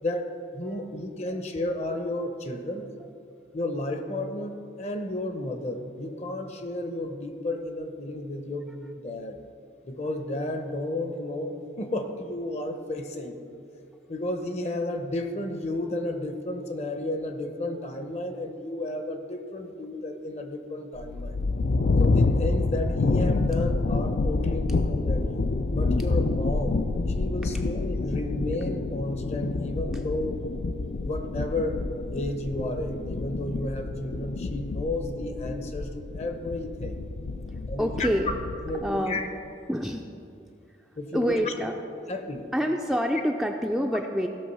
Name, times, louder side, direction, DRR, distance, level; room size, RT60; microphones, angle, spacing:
voice 1, 0.0-2.8 3.5-8.7 9.0-9.4 9.9-13.3 14.1-21.4 22.0-26.8 27.1-30.4 31.0-31.8 32.1-37.0 37.7-38.1 38.7-39.3 41.0-41.4 42.1-42.5, left 1 dB, 35° left, 6 dB, 0.8 m, -32 dB
sound 1, 21.0-39.0, left 3 dB, 60° left, 0.4 m, -28 dB
voice 2, 37.8-38.3 38.8-39.2 39.7-40.1 41.1-41.7 42.5-44.3, equal, ahead, 1 dB, 0.4 m, -27 dB
16.0 x 6.4 x 5.4 m, 2.6 s
head